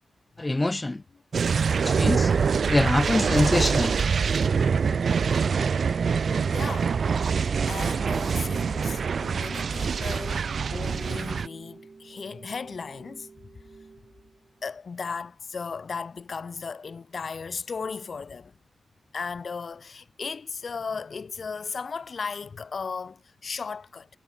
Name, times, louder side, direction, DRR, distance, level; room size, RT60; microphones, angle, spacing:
voice 1, 0.4-1.0 1.8-2.3 2.7-4.0, left 2 dB, 25° left, 0.6 m, -24 dB
sound 1, 1.3-11.5, right 6 dB, 70° right, 0.7 m, -25 dB
sound 2, 2.7-14.8, right 4 dB, 50° right, 6.9 m, -49 dB
voice 2, 6.5-7.0 7.4-13.3 14.6-18.6 19.1-24.1, left 5 dB, 60° left, 3.6 m, -36 dB
cardioid pair, 70°, 0 cm